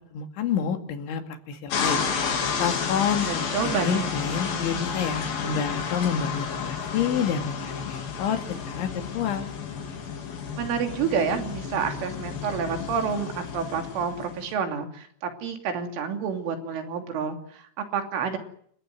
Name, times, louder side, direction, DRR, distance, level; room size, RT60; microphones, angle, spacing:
voice 1, 0.1-2.0 2.6-3.3 3.6-9.5, left 7 dB, 70° left, 6 dB, 4.6 m, -28 dB
sound 1, 1.7-14.5, left 6 dB, 50° left, 4.6 m, -31 dB
voice 2, 3.3-4.1 10.6-18.4, right 6 dB, 75° right, 5 dB, 5.4 m, -29 dB
29.0 x 15.0 x 9.5 m, 0.64 s
omnidirectional pair, 5.7 m